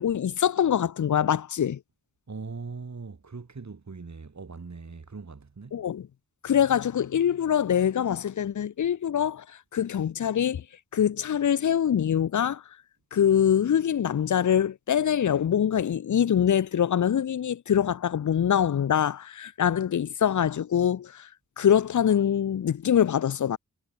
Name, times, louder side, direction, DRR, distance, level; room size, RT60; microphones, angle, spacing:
voice 1, 0.0-1.8 5.7-6.1 6.4-9.4 9.7-10.6 10.9-12.6 13.1-21.3 21.6-23.6, left 9 dB, 65° left, 0.7 m, -24 dB
voice 2, 2.3-5.9, right 4 dB, 55° right, 5.0 m, -40 dB
cardioid pair, 50°, 32 cm